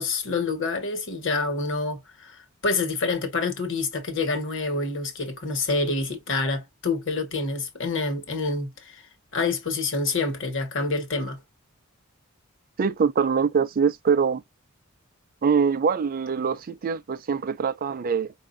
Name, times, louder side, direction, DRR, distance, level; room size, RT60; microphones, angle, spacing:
voice 1, 0.0-9.0 9.3-11.4, left 3 dB, 60° left, 1.2 m, -27 dB
voice 2, 12.8-14.4 15.4-18.3, right 6 dB, 40° right, 0.4 m, -23 dB
5.0 x 2.5 x 2.6 m
head